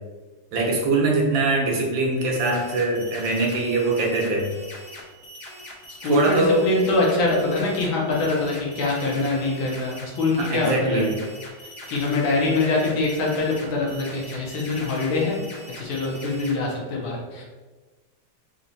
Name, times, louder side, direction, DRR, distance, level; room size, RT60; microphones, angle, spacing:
voice 1, 0.5-4.5 6.1-6.7 10.4-11.2, right 2 dB, 70° right, -1 dB, 1.4 m, -22 dB
sound 1, 2.1-16.5, left 1 dB, 55° left, 1.5 m, -42 dB
voice 2, 6.0-11.0 11.9-15.4 15.8-17.4, left 3 dB, 70° left, -2 dB, 1.7 m, -24 dB
4.2 x 2.9 x 3.9 m, 1.3 s
omnidirectional pair, 2.3 m